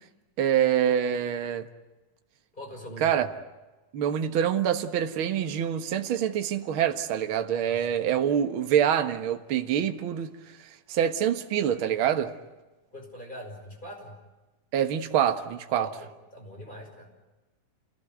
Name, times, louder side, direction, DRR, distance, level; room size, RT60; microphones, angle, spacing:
voice 1, 0.4-1.7 3.0-3.3 3.9-10.3 10.9-12.3 14.7-15.9, right 9 dB, 55° right, 1.5 m, -25 dB
voice 2, 2.5-3.3 7.7-7.8 12.9-14.2 15.7-17.1, equal, 10° left, 5.7 m, -42 dB
28.0 x 18.5 x 9.3 m
omnidirectional pair, 4.2 m